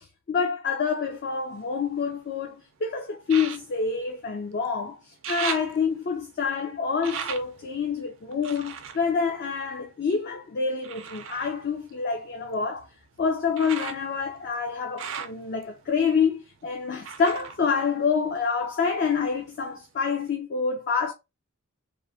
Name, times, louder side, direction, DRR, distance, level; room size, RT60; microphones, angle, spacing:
voice 1, 0.0-5.0 5.3-12.9 13.2-21.1, left 5 dB, 45° left, 0.4 m, -27 dB
sound 1, 1.1-2.4 3.2-4.8 5.0-10.2 10.8-18.7 19.0-19.8 20.3-20.4, right 7 dB, 60° right, 0.4 m, -40 dB
2.9 x 2.0 x 2.6 m
head